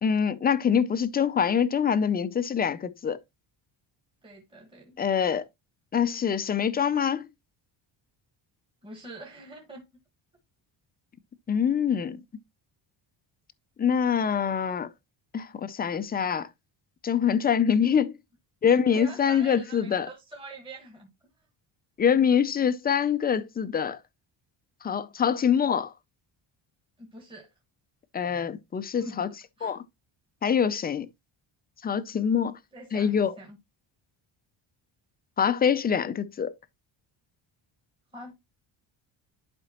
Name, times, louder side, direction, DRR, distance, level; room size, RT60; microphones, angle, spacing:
voice 1, 0.0-3.2 5.0-5.4 5.9-7.3 11.5-12.2 13.8-14.9 15.3-16.5 17.0-18.2 18.6-20.1 22.0-24.0 24.8-25.9 28.1-29.3 29.6-29.8 30.4-31.1 31.8-32.6 32.9-33.3 35.4-36.5, left 7 dB, 20° left, 0.4 m, -24 dB
voice 2, 4.2-5.4 8.8-9.9 18.8-21.1 27.0-27.5 29.0-29.3 29.6-29.8 32.7-33.6 38.1-38.3, right 2 dB, 10° right, 1.4 m, -45 dB
11.0 x 5.0 x 2.9 m
cardioid pair, 170°, 48 cm